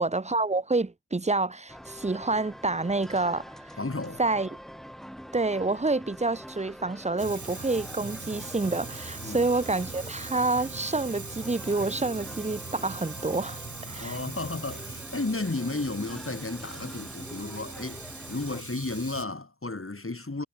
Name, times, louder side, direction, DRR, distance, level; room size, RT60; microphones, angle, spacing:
voice 1, 0.0-3.4 4.2-4.5 5.3-14.2, right 3 dB, 20° right, 0.6 m, -28 dB
sound 1, 1.7-18.6, equal, ahead, 3.2 m, -45 dB
voice 2, 3.8-4.2 8.0-8.1 9.2-9.5 14.0-20.5, left 2 dB, 35° left, 2.7 m, -33 dB
Fire, 7.2-19.2, right 3 dB, 55° right, 5.3 m, -41 dB
wide cardioid pair, 45°, 36 cm